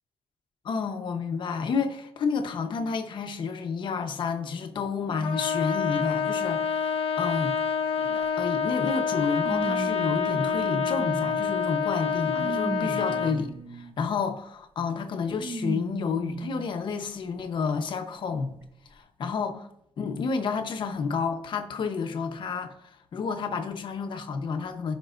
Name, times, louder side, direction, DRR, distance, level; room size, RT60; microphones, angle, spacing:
voice 1, 0.6-7.6 8.0-18.5 18.9-19.7 20.0-22.7 23.1-24.9, left 5 dB, 50° left, 0.9 m, -30 dB
Trumpet, 5.2-13.4, left 6 dB, 70° left, 0.8 m, -27 dB
sound 1, 8.2-8.3 9.4-11.5 12.0-14.1 15.3-16.7 17.4-17.5 18.6-18.7, right 3 dB, 25° right, 1.0 m, -36 dB
16.0 x 5.4 x 2.6 m
wide cardioid pair, 155°, 10 cm